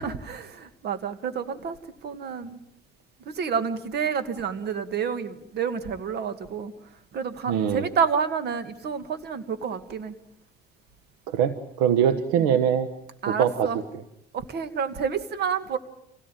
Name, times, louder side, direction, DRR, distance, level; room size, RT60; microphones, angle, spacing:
voice 1, 0.0-1.8 2.0-2.6 3.3-6.7 7.1-10.1 13.2-13.8 14.3-15.8, right 6 dB, 55° right, 11 dB, 2.1 m, -29 dB
voice 2, 7.5-7.9 11.3-12.9 13.3-13.8, right 8 dB, 80° right, 11 dB, 1.3 m, -23 dB
26.0 x 17.0 x 9.2 m, 0.78 s
hypercardioid pair, 75°, 20 cm